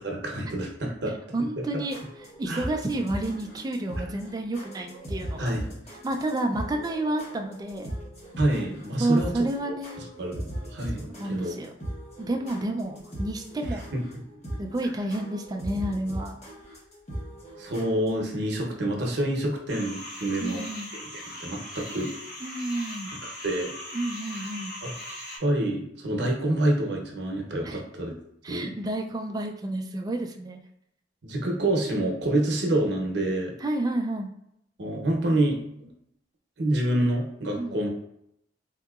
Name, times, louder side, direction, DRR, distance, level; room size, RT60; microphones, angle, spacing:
voice 1, 0.0-1.1 1.6-1.7 2.5-2.7 5.4-5.7 8.4-9.3 10.2-10.5 10.7-11.6 13.9-14.0 17.6-20.6 20.9-22.1 23.4-23.7 24.8-24.9 25.4-28.1 28.5-28.7 31.2-33.5 34.8-35.9 36.6-37.9, right 1 dB, 65° right, 0 dB, 0.7 m, -27 dB
voice 2, 1.3-5.6 6.0-7.9 9.0-10.1 11.2-11.7 12.2-13.9 14.6-16.4 20.4-20.9 22.4-23.1 23.9-24.7 27.6-27.8 28.4-30.6 33.6-34.3 37.6-37.8, right 1 dB, 20° right, 3 dB, 0.3 m, -30 dB
sound 1, 1.7-18.2, equal, 35° left, 1.0 m, -39 dB
sound 2, 19.7-25.4, left 1 dB, 60° left, 1.3 m, -39 dB
3.5 x 2.8 x 2.3 m, 0.77 s
head